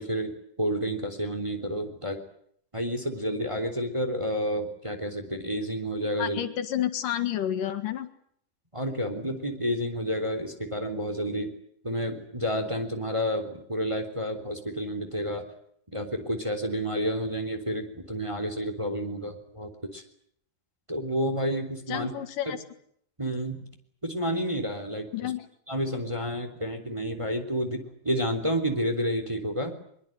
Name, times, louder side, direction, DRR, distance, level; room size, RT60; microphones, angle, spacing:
voice 1, 0.0-2.2 2.7-6.4 8.7-11.5 11.8-15.5 15.9-20.0 20.9-22.1 22.4-22.5 23.2-23.7 24.0-25.3 25.7-29.8, equal, 10° right, 5 dB, 3.2 m, -30 dB
voice 2, 6.2-8.1 21.9-22.6 25.1-25.5, left 11 dB, 75° left, 7 dB, 3.2 m, -30 dB
23.0 x 22.5 x 9.1 m, 0.67 s
omnidirectional pair, 3.8 m